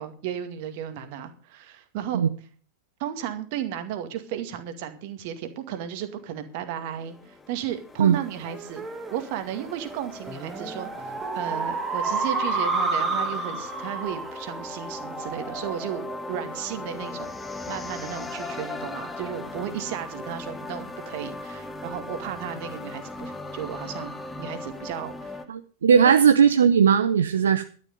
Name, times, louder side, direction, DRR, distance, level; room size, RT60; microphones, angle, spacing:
voice 1, 0.0-2.2 3.0-8.8 9.1-10.9 11.3-17.3 17.7-25.4 26.0-26.1, right 10 dB, 45° right, 8 dB, 2.1 m, -34 dB
sound 1, 6.1-25.4, left 2 dB, 10° left, 1.4 m, -39 dB
sound 2, 8.1-17.0, right 3 dB, 15° right, 2.5 m, -31 dB
voice 2, 25.5-27.6, right 7 dB, 65° right, 10 dB, 0.7 m, -18 dB
12.0 x 11.0 x 5.2 m, 0.41 s
figure-of-eight pair, 90°, 0 cm